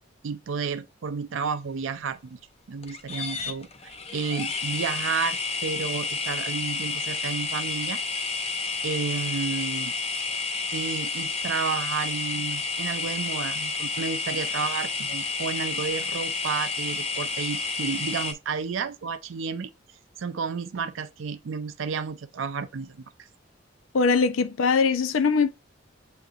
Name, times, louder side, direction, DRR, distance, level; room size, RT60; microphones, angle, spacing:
voice 1, 0.2-2.4 2.7-8.0 8.8-9.9 10.7-19.7 20.2-23.0, right 5 dB, 75° right, 0.4 m, -31 dB
sound 1, 2.8-18.3, left 4 dB, 30° left, 0.5 m, -30 dB
voice 2, 23.9-25.5, left 5 dB, 85° left, 0.5 m, -21 dB
7.8 x 2.8 x 2.4 m
head